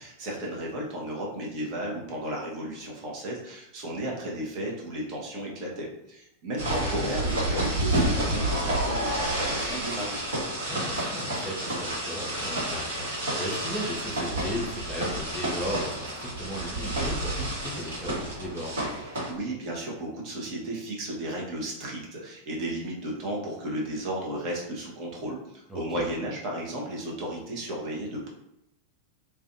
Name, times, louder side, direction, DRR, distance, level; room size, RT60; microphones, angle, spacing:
voice 1, 0.0-10.2 19.3-28.3, right 1 dB, 40° right, -3 dB, 0.7 m, -34 dB
sound 1, 6.6-19.3, right 1 dB, 65° right, 1.0 m, -30 dB
voice 2, 10.7-18.9 25.7-26.1, equal, 5° left, -5 dB, 0.6 m, -36 dB
2.5 x 2.2 x 2.6 m, 0.83 s
figure-of-eight pair, 90°, 0 cm